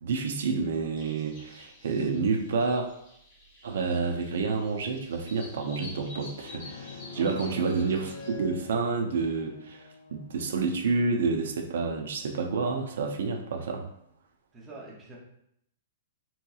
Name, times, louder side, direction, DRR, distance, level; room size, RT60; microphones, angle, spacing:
voice 1, 0.0-2.9 3.6-9.8 10.1-13.8, right 4 dB, 65° right, 3 dB, 0.4 m, -29 dB
sound 1, 1.0-8.3, left 2 dB, 30° left, 0.9 m, -49 dB
sound 2, 6.4-10.6, left 4 dB, 70° left, 0.4 m, -45 dB
voice 2, 7.1-7.6 14.5-15.2, right 2 dB, 10° right, -4 dB, 0.5 m, -45 dB
3.7 x 2.8 x 2.3 m, 0.75 s
hypercardioid pair, 180°, 0 cm